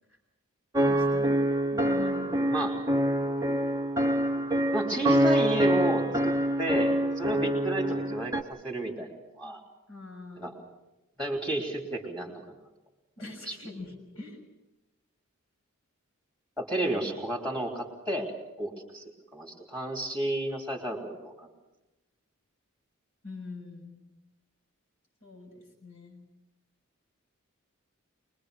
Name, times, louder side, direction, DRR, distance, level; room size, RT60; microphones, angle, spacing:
sound 1, 0.7-8.4, right 1 dB, 15° right, 0.7 m, -26 dB
voice 1, 0.8-1.4 1.7-2.7 9.9-10.6 13.2-14.4 23.2-24.1 25.2-26.2, left 3 dB, 75° left, 3 dB, 6.4 m, -43 dB
voice 2, 4.7-9.1 9.4-9.6 10.4-10.5 11.2-12.4 13.5-13.6 16.6-18.3 18.6-21.5, right 1 dB, 5° left, 1 dB, 3.1 m, -32 dB
24.5 x 21.0 x 6.5 m, 0.97 s
head